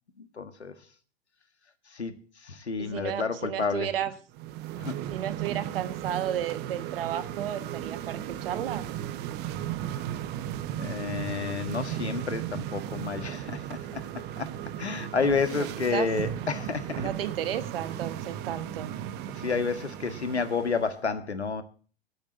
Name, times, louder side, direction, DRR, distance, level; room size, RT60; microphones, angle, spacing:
voice 1, 0.2-0.7 1.9-2.1 2.4-3.9 4.8-5.0 10.8-14.0 14.4-14.5 14.8-17.1 19.4-21.6, left 5 dB, 80° left, 10 dB, 1.6 m, -30 dB
voice 2, 2.8-4.1 5.1-8.9 15.5-16.1 17.0-18.9, right 10 dB, 60° right, 12 dB, 1.4 m, -33 dB
sound 1, 4.3-21.0, right 11 dB, 30° right, 0.8 m, -36 dB
9.6 x 8.8 x 8.2 m, 0.41 s
figure-of-eight pair, 95°, 33 cm